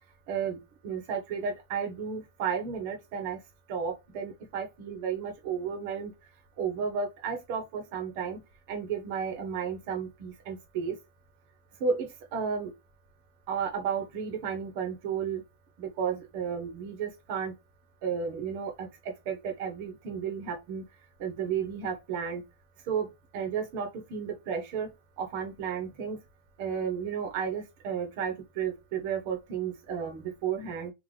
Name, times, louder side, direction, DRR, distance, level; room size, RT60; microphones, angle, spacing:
voice 1, 0.3-3.4 3.7-6.1 6.6-8.4 8.7-11.0 11.8-12.7 13.5-15.4 15.8-17.5 18.0-20.9 21.2-22.4 22.9-23.1 23.3-26.2 26.6-30.9, right 6 dB, 45° right, 1.3 m, -33 dB
3.4 x 2.8 x 4.0 m
supercardioid pair, 155°, 0 cm